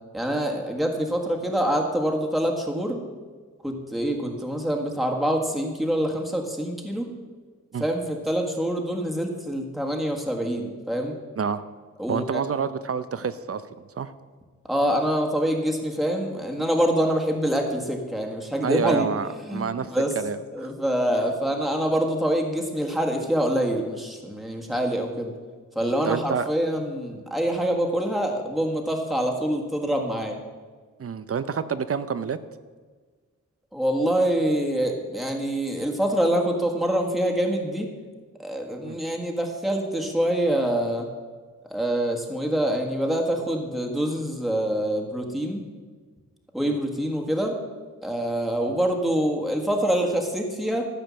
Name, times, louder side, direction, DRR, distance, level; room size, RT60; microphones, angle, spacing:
voice 1, 0.1-3.0 3.6-7.1 7.8-11.1 12.0-12.4 14.7-19.1 19.5-20.1 20.5-25.3 25.7-30.4 33.7-37.9 38.4-41.1 41.6-45.6 46.5-47.6 48.0-50.9, equal, ahead, 1 dB, 1.7 m, -25 dB
voice 2, 12.1-13.6 14.0-14.1 18.6-20.7 25.8-26.5 31.0-32.4 38.8-39.0 46.6-46.8, right 6 dB, 50° right, 13 dB, 0.6 m, -28 dB
13.5 x 5.1 x 7.4 m, 1.5 s
cardioid pair, 75°, 31 cm